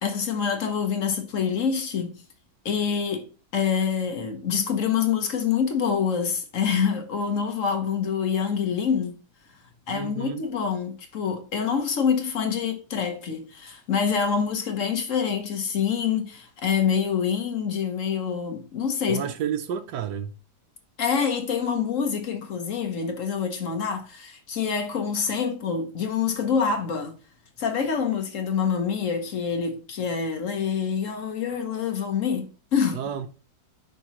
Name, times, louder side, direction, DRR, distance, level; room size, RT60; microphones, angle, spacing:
voice 1, 0.0-2.2 2.6-3.3 3.5-9.2 9.9-19.2 21.0-27.1 27.6-33.0, left 6 dB, 55° left, 1.1 m, -26 dB
voice 2, 9.9-10.4 19.1-20.3 32.9-33.3, right 8 dB, 90° right, 1.3 m, -30 dB
9.9 x 3.7 x 3.0 m
omnidirectional pair, 1.8 m